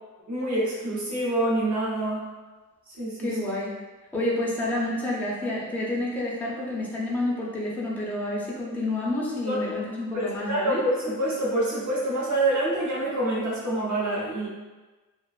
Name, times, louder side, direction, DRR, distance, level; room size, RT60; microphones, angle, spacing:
voice 1, 0.3-2.2 3.0-3.4 9.5-9.7 10.1-14.5, right 1 dB, 60° right, -7 dB, 0.8 m, -26 dB
voice 2, 3.2-3.7 4.1-10.8, left 1 dB, 5° left, -5 dB, 0.4 m, -29 dB
2.4 x 2.2 x 2.3 m, 1.2 s
wide cardioid pair, 130°, 33 cm